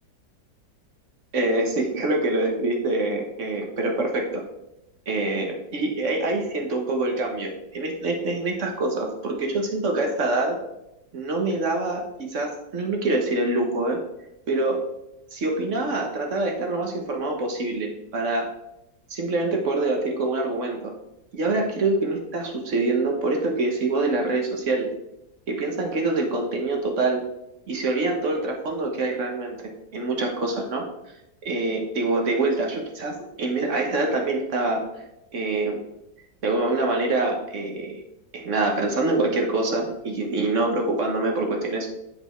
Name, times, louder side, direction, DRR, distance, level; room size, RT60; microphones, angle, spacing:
voice 1, 1.3-4.4 5.1-10.6 11.1-12.0 12.3-14.0 14.5-14.8 15.3-18.5 19.1-20.9 21.3-24.9 25.5-27.2 27.7-29.6 29.9-30.8 31.4-34.8 35.3-35.8 36.4-38.0 38.3-41.9, right 2 dB, 45° right, 1 dB, 1.4 m, -25 dB
7.1 x 5.3 x 4.4 m, 0.87 s
omnidirectional pair, 2.0 m